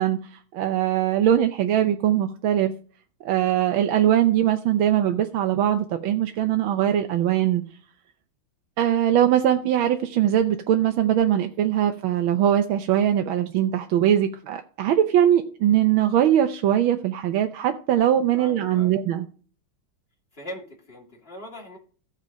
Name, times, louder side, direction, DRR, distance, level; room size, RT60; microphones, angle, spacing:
voice 1, 0.0-2.7 3.2-7.6 8.8-19.2, right 11 dB, 80° right, 6 dB, 1.6 m, -21 dB
voice 2, 18.3-19.0 20.3-21.8, equal, 30° left, -1 dB, 3.1 m, -40 dB
15.0 x 5.3 x 5.2 m, 0.42 s
omnidirectional pair, 2.2 m